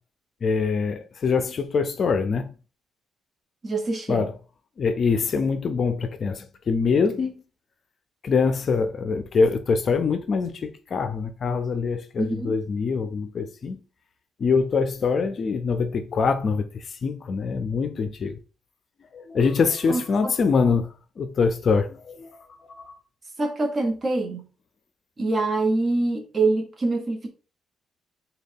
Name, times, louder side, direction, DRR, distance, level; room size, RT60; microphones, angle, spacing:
voice 1, 0.4-2.5 4.1-4.3 4.8-7.4 8.2-13.8 14.4-18.4 19.1-20.9 21.2-22.3 22.7-22.9, left 5 dB, 50° left, 0.4 m, -24 dB
voice 2, 3.6-4.3 12.2-12.6 19.9-20.3 23.4-24.4 25.2-27.3, right 2 dB, 30° right, 0.9 m, -25 dB
3.7 x 2.3 x 3.5 m
cardioid pair, 90°, 0 cm